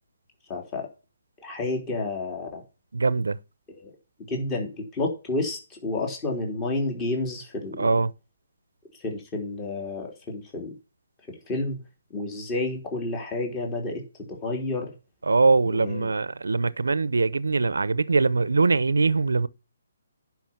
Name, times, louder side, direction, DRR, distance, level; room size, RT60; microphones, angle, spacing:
voice 1, 0.5-0.9 1.4-2.6 3.8-3.9 4.3-8.0 9.0-10.7 11.3-11.8 12.1-14.0 14.3-14.9 15.6-16.1, left 2 dB, 20° left, 3.3 m, -30 dB
voice 2, 2.9-3.4 7.8-8.1 15.3-19.5, right 3 dB, 90° right, 0.7 m, -22 dB
10.5 x 5.9 x 7.1 m
hypercardioid pair, 155°, 0 cm